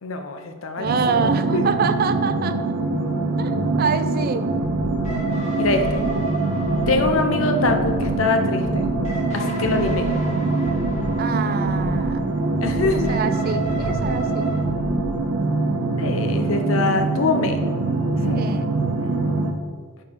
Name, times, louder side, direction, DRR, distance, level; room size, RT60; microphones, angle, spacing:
voice 1, 0.0-1.7 5.6-6.0 6.9-8.8 9.3-10.1 12.6-13.1 16.0-17.6 18.2-18.6 19.0-19.1, left 3 dB, 70° left, 6 dB, 0.6 m, -24 dB
voice 2, 0.8-2.7 3.4-4.5 11.2-12.2 12.8-14.6 18.3-18.7, right 5 dB, 45° right, 10 dB, 0.3 m, -26 dB
sound 1, 0.8-19.5, right 2 dB, 90° right, 0.9 m, -23 dB
sound 2, 4.6-5.2 5.6-6.2 6.6-7.2 7.6-8.2 8.6-9.2 9.6-10.2 10.6-11.2 11.6-12.2 12.6-13.2 13.6-14.2 14.6-15.2, equal, 85° left, 1.8 m, -35 dB
sound 3, 5.0-14.6, right 2 dB, 30° left, 1.5 m, -33 dB
4.9 x 4.8 x 5.4 m, 1.5 s
head